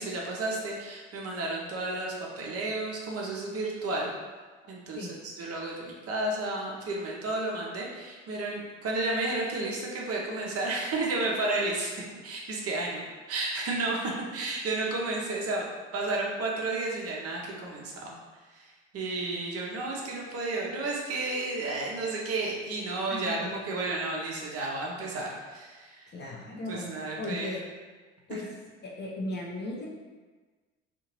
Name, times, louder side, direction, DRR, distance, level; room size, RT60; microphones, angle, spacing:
voice 1, 0.0-4.1 4.7-18.1 18.5-26.1 26.7-27.5 28.3-28.4, right 2 dB, 45° right, -2 dB, 0.8 m, -32 dB
voice 2, 23.1-23.5 26.1-26.9 27.2-27.6 28.3-28.5 28.8-29.9, left 2 dB, 30° left, -3 dB, 0.7 m, -36 dB
2.7 x 2.6 x 2.9 m, 1.4 s
hypercardioid pair, 60°, 33 cm